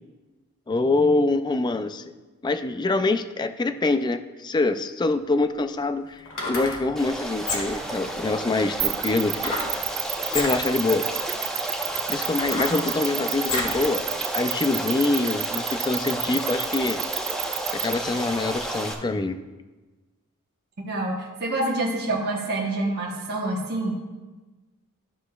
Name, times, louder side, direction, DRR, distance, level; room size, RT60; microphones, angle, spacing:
voice 1, 0.7-2.1 2.4-9.5 10.3-11.1 12.1-14.1 14.3-17.0 17.8-19.4, left 3 dB, 20° left, 9 dB, 0.3 m, -25 dB
sound 1, 5.0-5.1 6.2-6.8 7.4-7.9 9.4-9.8 10.2-10.6 11.3-11.4 11.9-13.8 14.2-14.3, left 2 dB, 65° left, 1.6 m, -30 dB
Stream, 7.0-18.9, right 1 dB, ahead, 0.8 m, -31 dB
sound 2, 8.8-17.9, right 18 dB, 80° right, 0.4 m, -29 dB
voice 2, 20.8-24.0, right 2 dB, 45° right, -2 dB, 1.0 m, -27 dB
13.0 x 6.7 x 2.3 m, 1.2 s
head